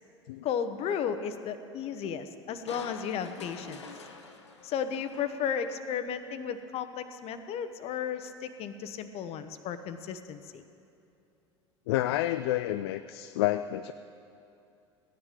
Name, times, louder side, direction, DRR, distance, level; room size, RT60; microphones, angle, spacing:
voice 1, 0.4-3.8 4.6-10.6, left 7 dB, 45° left, 10 dB, 0.9 m, -34 dB
Crushing, 2.7-6.0 6.5-6.6, left 4 dB, 85° left, 1.0 m, -47 dB
voice 2, 11.9-13.9, left 14 dB, 65° left, 11 dB, 0.4 m, -29 dB
16.0 x 10.0 x 5.0 m, 2.6 s
figure-of-eight pair, 75°, 14 cm